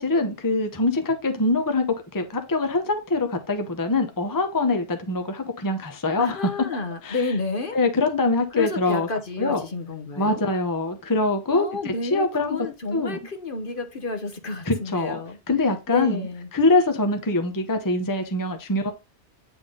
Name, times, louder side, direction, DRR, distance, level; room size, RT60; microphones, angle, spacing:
voice 1, 0.0-1.9 2.1-6.5 7.0-7.2 7.7-9.1 9.4-9.6 10.2-12.6 12.9-13.2 14.6-15.2 15.5-18.9, left 2 dB, 20° left, 0.8 m, -24 dB
voice 2, 6.2-7.8 8.5-10.4 11.5-15.4 15.9-16.5, left 3 dB, 50° left, 1.2 m, -30 dB
8.9 x 3.6 x 3.7 m
omnidirectional pair, 1.2 m